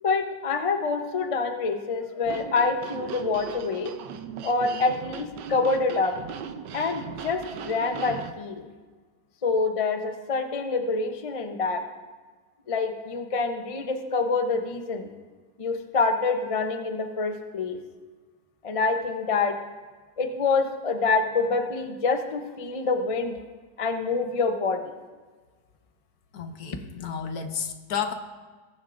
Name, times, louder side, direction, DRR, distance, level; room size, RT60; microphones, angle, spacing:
voice 1, 0.0-3.9 4.4-6.1 6.7-8.7 9.4-11.8 12.7-15.1 15.6-17.8 18.6-19.6 20.2-23.4 23.8-24.8, left 4 dB, 35° left, 5 dB, 0.5 m, -26 dB
sound 1, 2.2-8.3, right 8 dB, 85° right, 1.3 m, -38 dB
voice 2, 26.3-28.1, left 7 dB, 65° left, 7 dB, 1.2 m, -32 dB
19.5 x 10.0 x 2.6 m, 1.4 s
omnidirectional pair, 1.9 m